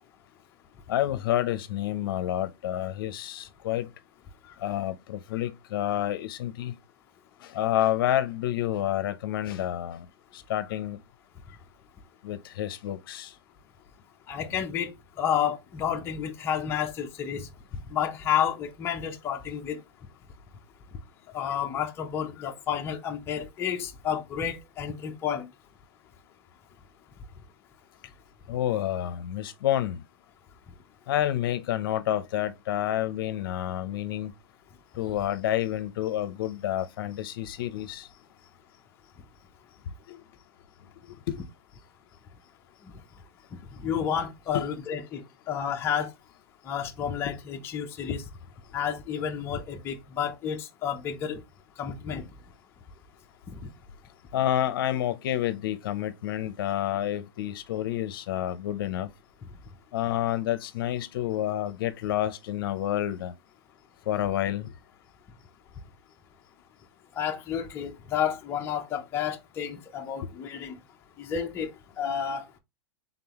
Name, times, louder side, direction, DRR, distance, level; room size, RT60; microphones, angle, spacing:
voice 1, 0.9-3.9 4.5-6.7 7.4-10.1 10.3-11.0 12.2-13.3 21.4-21.5 22.4-22.5 28.5-30.0 31.1-34.3 35.0-38.1 40.1-40.2 41.3-41.4 44.5-44.6 54.3-59.1 59.9-63.3 64.1-64.7, left 12 dB, 60° left, 0.6 m, -29 dB
voice 2, 14.3-19.8 21.3-25.5 42.8-43.0 43.7-46.1 46.6-48.3 48.7-51.4 51.8-52.3 53.5-53.7 67.1-70.8 71.2-72.5, left 8 dB, 20° left, 0.5 m, -31 dB
3.8 x 3.7 x 2.9 m
hypercardioid pair, 150°, 13 cm